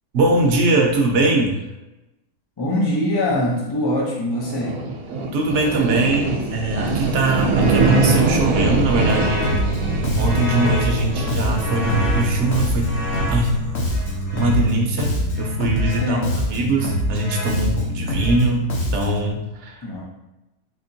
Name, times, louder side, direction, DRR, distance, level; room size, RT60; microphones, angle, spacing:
voice 1, 0.1-1.6 5.3-9.5 10.2-13.0 13.3-13.6 14.3-16.2 16.5-19.8, right 2 dB, 60° right, 1 dB, 0.8 m, -21 dB
voice 2, 2.6-4.8 15.9-16.6 19.8-20.0, left 1 dB, 35° left, -4 dB, 0.4 m, -23 dB
sound 1, 4.3-14.7, right 3 dB, 80° right, 1.1 m, -23 dB
sound 2, 7.5-14.6 15.3-16.1 16.8-17.7 18.2-18.4, left 1 dB, 70° left, 1.4 m, -32 dB
Bass guitar, 9.4-19.3, equal, 55° left, 0.9 m, -24 dB
4.3 x 2.9 x 2.7 m, 1.0 s
omnidirectional pair, 1.6 m